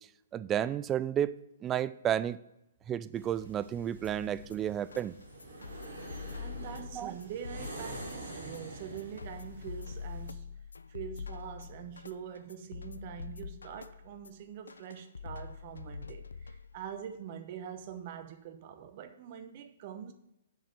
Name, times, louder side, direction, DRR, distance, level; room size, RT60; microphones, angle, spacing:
voice 1, 0.3-2.4 2.9-5.2 6.8-7.1, right 10 dB, 20° right, 0.4 m, -32 dB
sound 1, 3.1-10.3, right 2 dB, 80° right, 3.3 m, -47 dB
sound 2, 4.0-17.0, left 6 dB, 85° left, 0.4 m, -45 dB
voice 2, 6.4-10.5 10.9-20.1, right 9 dB, 45° right, 1.0 m, -44 dB
7.6 x 5.1 x 7.2 m
hypercardioid pair, 125°, 0 cm